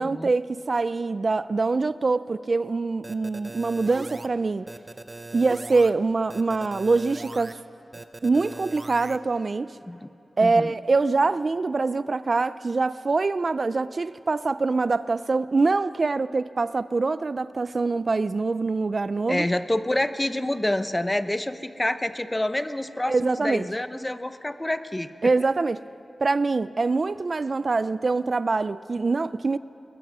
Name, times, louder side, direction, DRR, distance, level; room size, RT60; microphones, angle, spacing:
voice 1, 0.0-4.7 5.3-7.6 8.2-9.8 10.4-19.5 23.1-23.7 25.2-25.8 26.2-29.6, right 3 dB, 50° right, 15 dB, 0.4 m, -24 dB
sound 1, 3.0-4.3 4.7-5.9 6.3-7.5 7.9-9.2, right 2 dB, 30° right, 0.8 m, -40 dB
voice 2, 10.4-10.7 19.3-25.3, left 1 dB, 15° left, 11 dB, 0.7 m, -27 dB
20.5 x 20.5 x 6.1 m, 3.0 s
wide cardioid pair, 90°, 0 cm